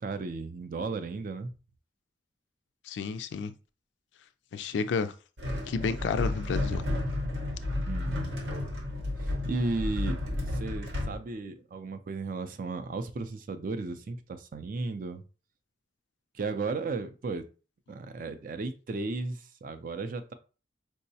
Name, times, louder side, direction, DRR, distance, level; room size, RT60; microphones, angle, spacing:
voice 1, 0.0-1.5 7.9-8.4 9.2-10.2 10.5-15.2 16.3-17.5 17.9-20.3, right 3 dB, 50° right, 0.4 m, -35 dB
voice 2, 2.9-3.5 4.5-5.1 5.7-6.8, left 5 dB, 70° left, 0.3 m, -31 dB
sound 1, 5.4-11.2, left 1 dB, 70° right, 0.8 m, -32 dB
4.5 x 2.0 x 2.7 m
head